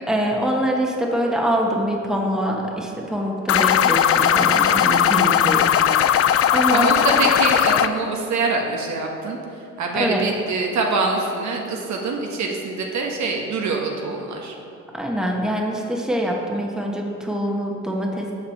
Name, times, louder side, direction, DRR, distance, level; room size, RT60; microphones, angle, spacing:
voice 1, 0.1-5.7 6.1-7.1 9.9-10.2 14.9-18.3, equal, ahead, -1 dB, 1.2 m, -24 dB
sound 1, 3.5-7.9, left 9 dB, 50° left, 0.4 m, -18 dB
voice 2, 6.7-14.5, right 3 dB, 65° right, 1 dB, 1.3 m, -24 dB
7.2 x 4.9 x 7.2 m, 2.6 s
cardioid pair, 90°, 30 cm